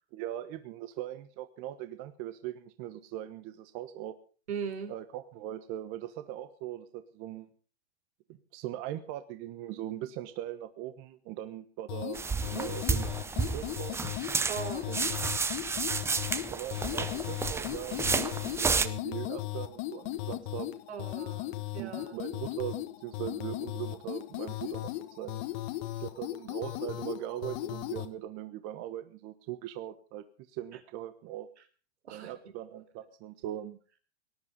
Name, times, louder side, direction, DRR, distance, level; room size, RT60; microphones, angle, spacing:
voice 1, 0.1-4.1 4.9-7.5 8.3-13.1 13.5-14.1 14.9-15.2 16.5-20.8 21.8-25.4 26.0-31.5 32.1-33.8, right 12 dB, 40° right, 10 dB, 1.2 m, -40 dB
voice 2, 4.5-4.9 14.5-14.9 15.5-15.6 20.9-22.1 32.0-32.4, right 6 dB, 80° right, 9 dB, 3.7 m, -39 dB
sound 1, 11.9-28.1, left 17 dB, 45° left, 1.5 m, -37 dB
sound 2, 12.1-18.9, right 4 dB, 10° right, 0.7 m, -31 dB
19.0 x 11.0 x 5.3 m, 0.39 s
hypercardioid pair, 135°, 33 cm